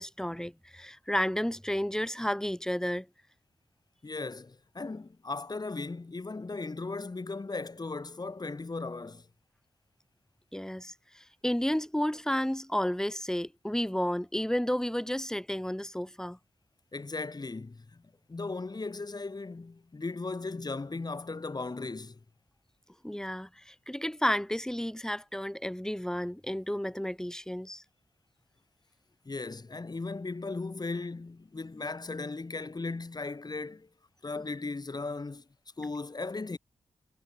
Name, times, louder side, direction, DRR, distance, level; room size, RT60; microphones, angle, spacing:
voice 1, 0.0-3.1 10.5-16.4 23.0-27.8, equal, 5° left, 4.9 m, -32 dB
voice 2, 4.0-9.3 16.9-18.0 18.3-22.2 29.3-33.9 34.2-35.4 35.8-36.6, left 3 dB, 35° left, 5.6 m, -37 dB
cardioid pair, 70°, 11 cm